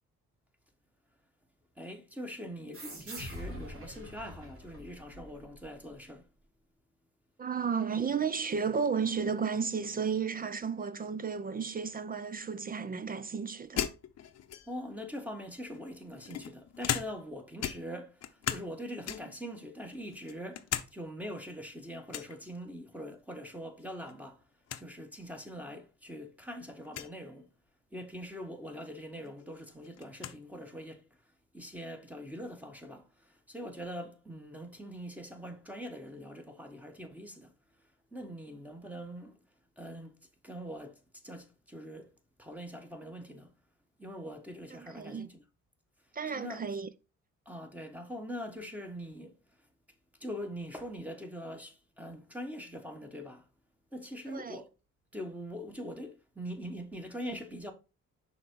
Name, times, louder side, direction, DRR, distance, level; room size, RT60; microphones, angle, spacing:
voice 1, 1.8-6.3 14.7-24.4 24.8-27.5 27.9-31.0 31.5-37.5 38.1-39.4 39.8-40.1 40.4-42.1 42.4-43.5 44.0-45.4 46.3-46.6 47.4-49.4 50.2-53.5 53.9-54.7 55.1-57.7, equal, 5° right, 1.3 m, -43 dB
sound 1, 2.7-5.9, equal, 45° right, 2.7 m, -45 dB
voice 2, 7.4-13.9 44.7-45.3 46.1-46.9 54.3-54.6, right 6 dB, 30° right, 0.5 m, -33 dB
sound 2, 13.8-14.9 15.7-17.3 17.6-18.7 19.0-19.4 19.9-20.9 21.2-21.3 22.1-22.4 23.8-24.1 24.4-24.5 24.7-24.9 25.7-25.8 26.8-27.1 28.8-28.9 29.2-30.4, left 10 dB, 55° left, 0.7 m, -37 dB
5.9 x 3.7 x 4.6 m
cardioid pair, 90°, 30 cm